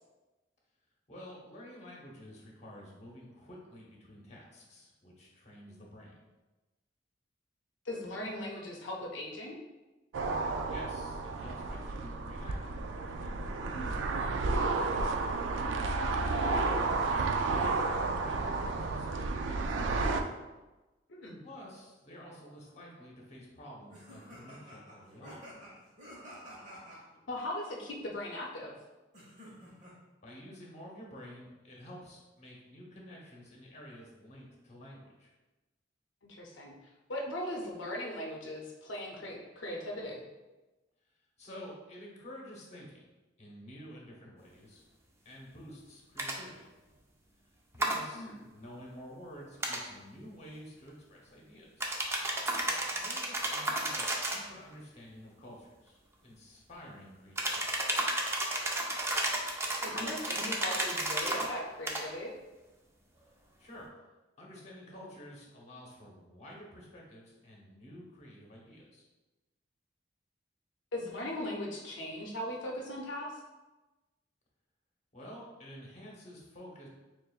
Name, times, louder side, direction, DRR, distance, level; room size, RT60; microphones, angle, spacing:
voice 1, 1.1-6.3 10.3-15.2 16.1-20.3 21.4-25.4 30.2-35.3 41.4-43.0 43.4-44.9 45.2-46.6 47.7-51.9 53.0-58.0 63.6-63.9 64.4-69.0 75.1-76.9, equal, 40° left, -2 dB, 1.0 m, -50 dB
voice 2, 7.8-9.6 13.7-14.1 21.1-21.4 27.3-28.8 36.2-36.7 37.1-40.2 48.1-48.4 52.6-53.1 59.8-62.3 70.9-73.4, left 1 dB, 90° left, -1 dB, 0.6 m, -39 dB
sound 1, 10.1-20.2, right 3 dB, 90° right, 0.4 m, -32 dB
sound 2, 23.9-27.0 29.1-29.9, equal, 40° right, 1.1 m, -50 dB
sound 3, 46.2-46.4 47.8-48.0 49.6-49.8 51.8-54.5 57.4-61.5 61.9-62.1, right 1 dB, 15° right, 0.4 m, -32 dB
6.6 x 2.4 x 2.4 m, 1.1 s
head